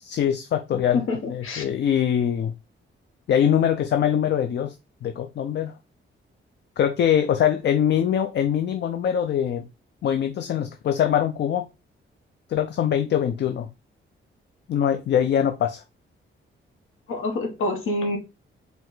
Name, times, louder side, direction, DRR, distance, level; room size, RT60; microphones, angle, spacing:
voice 1, 0.0-2.5 3.3-4.7 5.0-5.7 6.8-9.7 10.0-11.7 12.5-13.7 14.7-15.8, left 9 dB, 55° left, 0.4 m, -23 dB
voice 2, 0.9-1.7 17.1-18.2, left 2 dB, 80° left, 1.2 m, -26 dB
4.7 x 2.2 x 3.9 m
wide cardioid pair, 150°, 21 cm